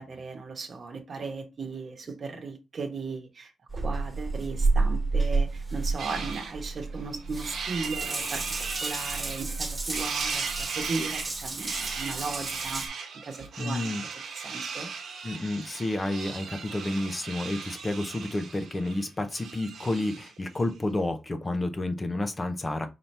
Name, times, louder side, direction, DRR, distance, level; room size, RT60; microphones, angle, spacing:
voice 1, 0.0-8.4 8.8-12.8 13.2-13.9 14.4-14.9, right 4 dB, 40° right, 1.1 m, -36 dB
Water tap faucet / Bathtub (filling or washing) / Drip, 3.7-12.9, right 3 dB, 20° right, 1.4 m, -30 dB
sound 1, 6.0-6.5 7.0-9.6 9.9-20.4, right 5 dB, 85° right, 1.2 m, -37 dB
voice 2, 13.6-14.0 15.2-22.9, left 2 dB, 20° left, 0.6 m, -30 dB
5.6 x 2.9 x 3.3 m
wide cardioid pair, 165°, 0 cm